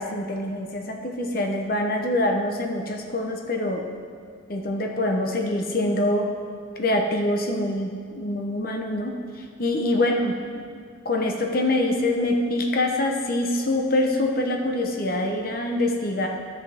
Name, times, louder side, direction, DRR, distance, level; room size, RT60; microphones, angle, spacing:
voice 1, 0.0-3.9 4.5-6.3 6.8-10.3 11.0-16.3, left 1 dB, 45° left, 3 dB, 0.9 m, -25 dB
11.0 x 7.7 x 3.6 m, 2.1 s
head